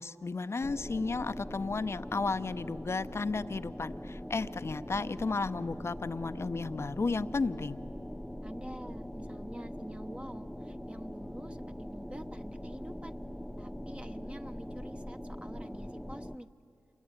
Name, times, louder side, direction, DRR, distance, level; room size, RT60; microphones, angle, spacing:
voice 1, 0.0-7.8, left 3 dB, 45° left, 12 dB, 0.8 m, -33 dB
sound 1, 0.6-16.4, equal, 5° left, 0.7 m, -42 dB
voice 2, 8.4-13.1 13.6-16.5, right 1 dB, 20° right, 7 dB, 1.1 m, -47 dB
26.5 x 22.0 x 9.8 m, 2.7 s
cardioid pair, 50°, 6 cm